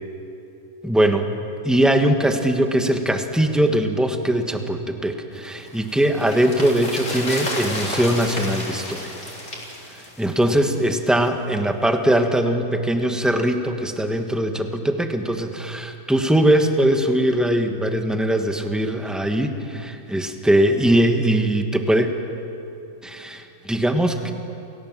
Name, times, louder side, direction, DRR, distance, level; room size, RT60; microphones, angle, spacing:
voice 1, 0.8-1.3 1.6-9.1 9.9-22.1 23.0-24.3, right 1 dB, ahead, 5 dB, 1.2 m, -21 dB
sound 1, 5.4-10.9 11.1-11.2, left 1 dB, 55° left, 4.5 m, -31 dB
29.0 x 17.0 x 7.4 m, 2.8 s
omnidirectional pair, 1.5 m